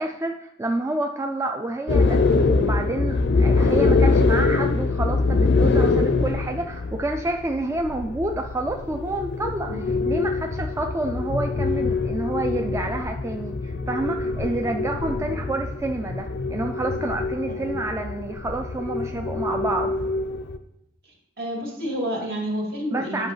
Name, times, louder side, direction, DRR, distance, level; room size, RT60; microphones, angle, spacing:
voice 1, 0.0-19.9 22.9-23.3, right 2 dB, 15° right, 4 dB, 0.3 m, -29 dB
sound 1, 1.9-20.6, left 3 dB, 65° left, 0.5 m, -24 dB
voice 2, 21.4-23.3, equal, 60° right, -2 dB, 2.3 m, -30 dB
10.5 x 5.4 x 3.1 m, 0.82 s
head